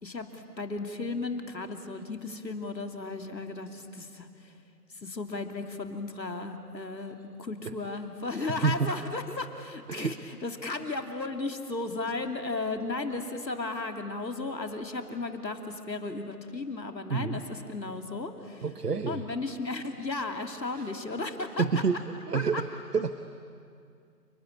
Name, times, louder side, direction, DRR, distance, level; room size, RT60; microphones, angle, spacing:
voice 1, 0.0-4.5 4.9-18.6 19.0-21.6 22.3-22.6, left 3 dB, 90° left, 6 dB, 3.0 m, -35 dB
voice 2, 8.3-8.9 9.9-10.2 17.1-17.4 18.6-19.2 20.7-20.9 21.6-22.0 22.3-22.7 22.9-23.1, right 5 dB, 65° right, 10 dB, 1.3 m, -28 dB
30.0 x 20.0 x 10.0 m, 2.4 s
figure-of-eight pair, 180°, 50 cm